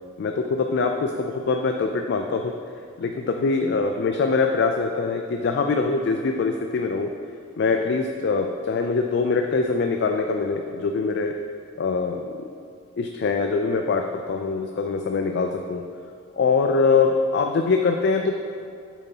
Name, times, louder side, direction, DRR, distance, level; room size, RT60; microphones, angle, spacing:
voice 1, 0.2-2.5 3.0-7.1 7.6-11.3 11.8-12.3 13.0-15.9 16.4-18.4, left 4 dB, 60° left, 4 dB, 0.3 m, -23 dB
7.9 x 7.0 x 2.8 m, 2.4 s
head